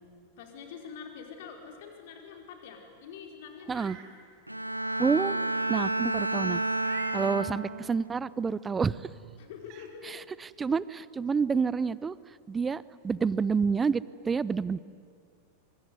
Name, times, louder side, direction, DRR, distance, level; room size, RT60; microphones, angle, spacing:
voice 1, 0.4-3.9 9.4-10.2, left 7 dB, 50° left, 3 dB, 4.6 m, -45 dB
Meow, 3.6-4.1 4.6-4.7 6.7-7.4 9.0-9.1 9.6-9.9, right 10 dB, 40° right, 2.9 m, -46 dB
Bowed string instrument, 4.5-8.0 8.5-8.9, right 2 dB, 90° right, 1.1 m, -31 dB
voice 2, 5.0-5.4 5.7-6.6 7.1-9.0 10.0-12.2 12.5-14.8, right 5 dB, 15° right, 20 dB, 0.6 m, -28 dB
25.5 x 24.0 x 9.6 m, 2.2 s
figure-of-eight pair, 90°, 0 cm